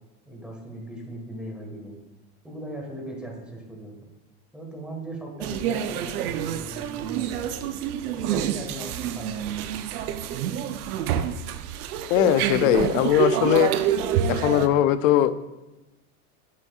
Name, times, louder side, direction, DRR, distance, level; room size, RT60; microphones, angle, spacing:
voice 1, 0.2-2.0 2.4-4.0 4.5-7.5 8.0-9.8, right 1 dB, ahead, -1 dB, 1.5 m, -38 dB
sound 1, 5.4-14.7, right 9 dB, 75° right, 0.7 m, -27 dB
voice 2, 12.1-13.7 14.3-15.4, left 12 dB, 60° left, 14 dB, 0.5 m, -20 dB
8.2 x 7.2 x 2.4 m, 1.0 s
supercardioid pair, 120°, 45 cm